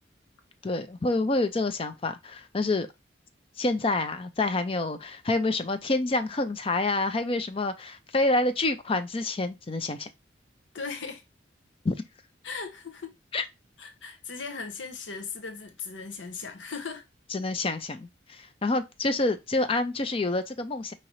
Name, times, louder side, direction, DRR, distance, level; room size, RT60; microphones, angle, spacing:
voice 1, 0.6-2.9 3.6-10.1 11.8-11.9 13.3-13.4 17.3-20.9, left 2 dB, 30° left, 0.5 m, -27 dB
voice 2, 10.7-11.2 12.4-13.1 13.8-17.0, left 5 dB, 90° left, 0.9 m, -38 dB
5.2 x 2.8 x 3.0 m
head